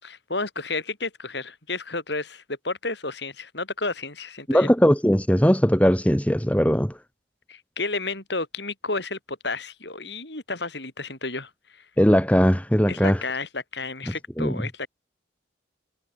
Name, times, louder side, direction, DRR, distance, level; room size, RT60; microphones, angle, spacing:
voice 1, 0.0-4.7 7.5-11.5 12.9-14.9, left 3 dB, 60° left, 6.7 m, -31 dB
voice 2, 4.5-6.9 12.0-13.2 14.4-14.6, equal, 5° left, 2.3 m, -19 dB
head